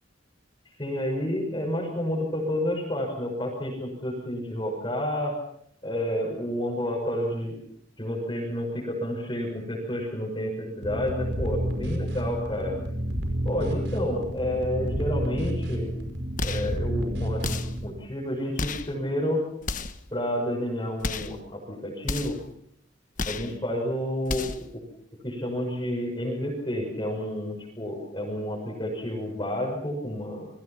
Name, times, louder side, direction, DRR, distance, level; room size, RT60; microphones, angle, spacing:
voice 1, 0.8-5.4 5.8-7.6 8.0-12.7 13.4-15.9 16.4-19.4 20.1-22.3 23.2-24.8 25.2-30.5, equal, 25° left, -2 dB, 6.4 m, -30 dB
sound 1, 10.8-17.9, equal, 65° right, 5.7 m, -30 dB
sound 2, 16.4-16.8 17.4-17.8 18.6-18.9 19.6-20.1 21.0-21.4 22.0-22.5 23.2-23.5 24.2-24.7, left 3 dB, 45° left, 1.3 m, -32 dB
29.0 x 23.0 x 6.0 m, 0.69 s
head